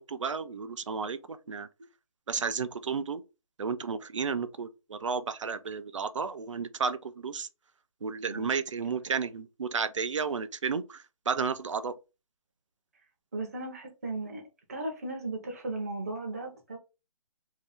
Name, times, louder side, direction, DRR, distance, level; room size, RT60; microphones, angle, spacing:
voice 1, 0.0-1.7 2.3-3.2 3.6-7.5 8.0-12.0, right 5 dB, 60° right, 0.5 m, -32 dB
voice 2, 13.3-14.4 14.7-16.8, right 2 dB, 25° right, 0.7 m, -36 dB
3.0 x 2.8 x 3.3 m
hypercardioid pair, 180°, 18 cm